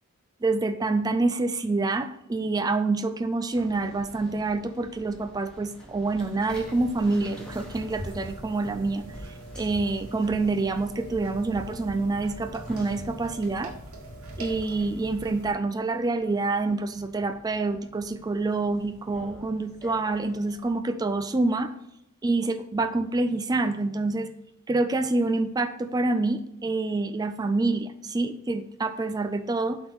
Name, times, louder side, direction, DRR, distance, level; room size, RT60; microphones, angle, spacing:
voice 1, 0.4-9.1 9.6-13.7 14.4-21.7 22.2-24.3 24.7-29.8, right 3 dB, 15° right, 10 dB, 0.3 m, -27 dB
sound 1, 3.5-20.7, equal, 5° left, 1.2 m, -49 dB
sound 2, 6.5-15.5, right 1 dB, 80° right, 1.5 m, -41 dB
7.8 x 3.6 x 4.7 m, 0.82 s
head